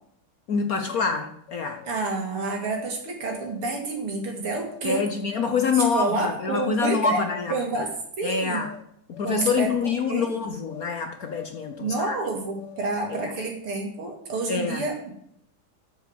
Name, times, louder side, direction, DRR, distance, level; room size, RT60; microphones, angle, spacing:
voice 1, 0.5-1.8 4.8-7.5 8.2-8.7 9.1-12.2 13.1-13.3 14.5-14.8, left 5 dB, 55° left, 6 dB, 1.1 m, -26 dB
sound 1, 0.9-2.0 2.6-2.9 3.2-3.8 4.6-4.8 5.2-5.7 6.5-6.8 7.1-7.8 8.5-8.8 9.1-9.7 10.7-10.9 11.2-12.0 12.6-13.6, left 8 dB, 85° left, 1.9 m, -44 dB
voice 2, 1.8-5.1 5.7-7.2 7.5-8.6 9.2-10.3 11.8-15.1, right 3 dB, 80° right, 2 dB, 3.3 m, -29 dB
8.2 x 7.3 x 7.9 m, 0.69 s
omnidirectional pair, 2.4 m